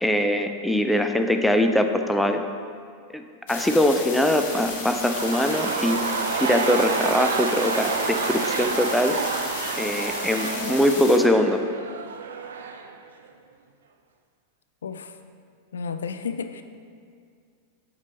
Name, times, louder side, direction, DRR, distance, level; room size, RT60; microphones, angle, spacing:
voice 1, 0.0-2.5 3.1-3.2 3.5-6.0 6.4-9.2 9.7-11.6, left 1 dB, 5° left, 5 dB, 0.5 m, -22 dB
sound 1, 3.5-11.2, left 3 dB, 50° left, 1.4 m, -34 dB
sound 2, 4.9-13.0 13.2-13.3, right 5 dB, 65° right, 0.5 m, -29 dB
voice 2, 14.8-15.1 15.7-16.6, left 5 dB, 65° left, 9 dB, 0.3 m, -32 dB
8.0 x 5.2 x 4.2 m, 2.2 s
figure-of-eight pair, 90°, 0 cm